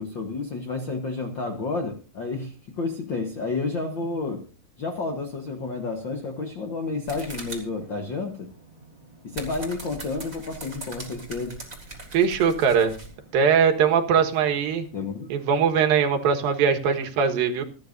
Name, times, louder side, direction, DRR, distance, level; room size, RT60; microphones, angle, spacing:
voice 1, 0.0-4.4 4.8-8.5 9.2-11.6 14.9-15.3 16.9-17.0, left 3 dB, 60° left, 4 dB, 1.2 m, -30 dB
sound 1, 7.1-14.9, right 2 dB, 10° right, 3.3 m, -42 dB
voice 2, 12.1-12.9 13.3-14.9 15.3-17.6, right 6 dB, 90° right, 5 dB, 3.2 m, -21 dB
28.0 x 10.0 x 2.6 m, 0.35 s
omnidirectional pair, 4.0 m